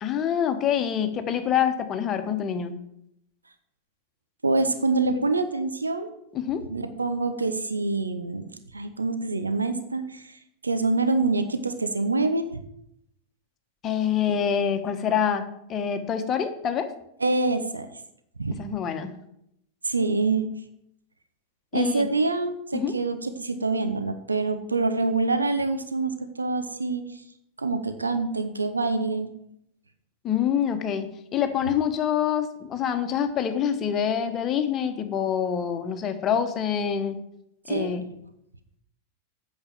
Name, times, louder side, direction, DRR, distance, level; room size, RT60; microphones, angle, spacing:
voice 1, 0.0-2.8 6.3-6.6 13.8-15.4 15.7-16.9 18.6-19.1 21.7-22.1 22.7-22.9 30.2-37.2 37.7-38.0, left 8 dB, 30° left, 7 dB, 1.3 m, -26 dB
voice 2, 4.4-6.1 6.7-8.4 8.7-10.4 10.6-12.6 17.2-17.9 18.4-18.5 19.8-20.5 21.7-26.1 26.4-27.0 27.6-29.3 37.7-38.0, right 3 dB, 80° right, 9 dB, 0.9 m, -25 dB
8.7 x 6.7 x 7.6 m, 0.78 s
figure-of-eight pair, 90°, 0 cm